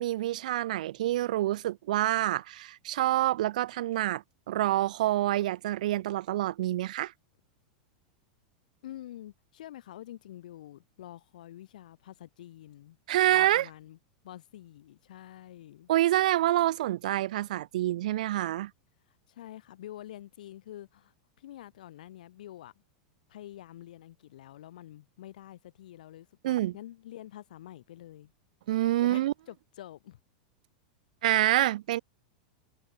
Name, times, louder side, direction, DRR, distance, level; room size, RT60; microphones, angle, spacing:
voice 1, 0.0-7.1 13.1-13.7 15.9-18.7 26.4-26.7 28.7-29.3 31.2-32.0, right 14 dB, 70° right, 0.3 m, -27 dB
voice 2, 8.8-13.0 13.2-14.0 14.2-15.9 19.3-22.7 23.3-28.3 29.0-30.2, left 13 dB, 75° left, 2.6 m, -47 dB
supercardioid pair, 175°, 4 cm